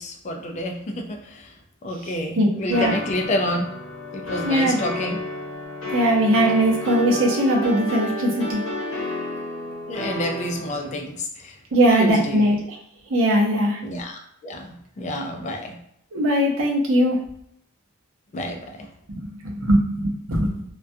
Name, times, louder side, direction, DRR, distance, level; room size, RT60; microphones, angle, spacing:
voice 1, 0.0-3.7 4.1-5.2 9.9-12.6 13.8-15.8 18.3-18.9, left 1 dB, 35° left, 4 dB, 0.3 m, -29 dB
voice 2, 2.4-3.0 4.4-4.8 5.9-8.6 11.7-12.6 13.1-13.8 16.1-17.2 19.1-20.6, right 1 dB, 65° right, -2 dB, 0.6 m, -20 dB
sound 1, 2.7-11.0, left 2 dB, 85° left, 0.9 m, -31 dB
2.3 x 2.2 x 2.6 m, 0.73 s
head